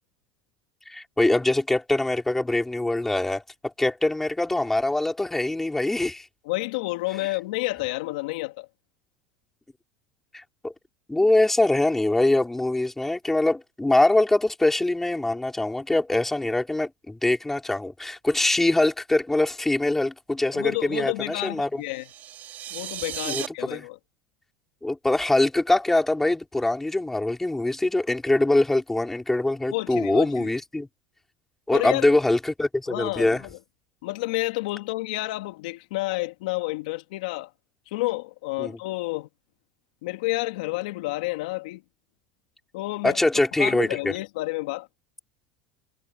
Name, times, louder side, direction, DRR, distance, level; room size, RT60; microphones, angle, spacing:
voice 1, 0.9-6.3 10.3-10.7 11.1-21.8 23.2-23.8 24.8-30.9 31.7-33.4 38.6-38.8 43.0-44.1, left 2 dB, 5° left, 4.6 m, -23 dB
voice 2, 6.4-8.7 20.5-22.1 22.7-24.0 29.7-30.5 31.7-32.1 32.9-33.6 34.0-37.5 37.9-39.3 40.0-41.8 42.7-43.2 43.6-44.9, left 21 dB, 80° left, 3.0 m, -30 dB
sound 1, 21.9-23.5, right 12 dB, 45° right, 4.5 m, -35 dB
supercardioid pair, 125°, 4 cm